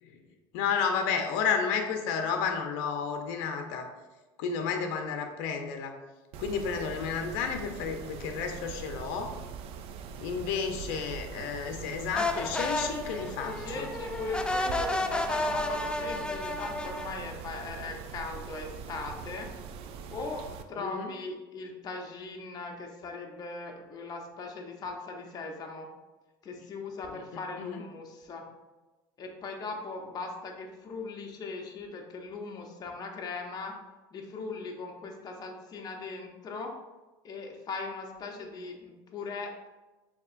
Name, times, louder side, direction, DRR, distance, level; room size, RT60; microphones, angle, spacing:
voice 1, 0.5-3.9 4.4-6.0 6.4-9.3 10.2-13.9 20.8-21.1 27.6-27.8, left 6 dB, 75° left, 5 dB, 0.6 m, -31 dB
Mechanisms, 6.3-20.6, right 6 dB, 60° right, 0.4 m, -42 dB
sound 1, 12.1-17.2, left 2 dB, 10° left, 0.3 m, -32 dB
voice 2, 13.4-19.5 20.1-25.9 26.4-28.5 29.2-33.8 34.1-36.7 37.2-39.7, left 3 dB, 35° left, 1 dB, 0.7 m, -39 dB
6.6 x 2.8 x 2.5 m, 1.1 s
supercardioid pair, 95°, 12 cm